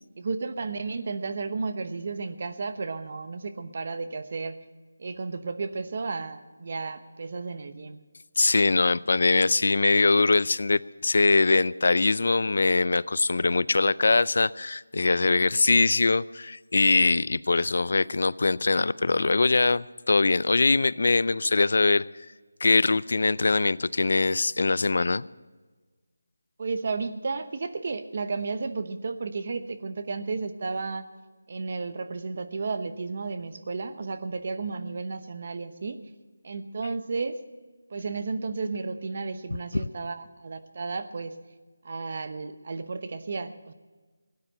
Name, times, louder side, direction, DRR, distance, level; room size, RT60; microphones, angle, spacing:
voice 1, 0.2-4.5 5.0-8.0 26.6-31.0 31.5-36.0 36.4-37.4 37.9-41.3 41.8-43.7, right 4 dB, 45° right, 10 dB, 1.0 m, -33 dB
voice 2, 8.4-22.0 22.6-25.2, left 3 dB, 60° left, 20 dB, 0.4 m, -22 dB
17.0 x 9.7 x 6.6 m, 1.3 s
figure-of-eight pair, 170°, 0 cm